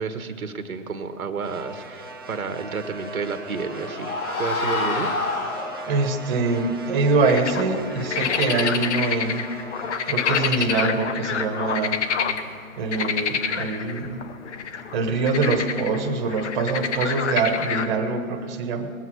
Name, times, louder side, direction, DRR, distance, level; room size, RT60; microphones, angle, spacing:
voice 1, 0.0-5.1, right 5 dB, 85° right, 8 dB, 1.3 m, -31 dB
sound 1, 1.4-13.7, right 1 dB, 20° right, 0.4 m, -40 dB
sound 2, 3.3-6.2, left 2 dB, 90° left, 2.2 m, -28 dB
voice 2, 5.9-9.5 10.1-12.0 12.8-14.2 14.9-18.9, right 3 dB, 35° right, 5 dB, 1.5 m, -24 dB
sound 3, 7.2-12.5 12.9-17.9, left 7 dB, 55° left, 1.0 m, -27 dB
20.0 x 8.4 x 6.3 m, 2.6 s
hypercardioid pair, 145°, 42 cm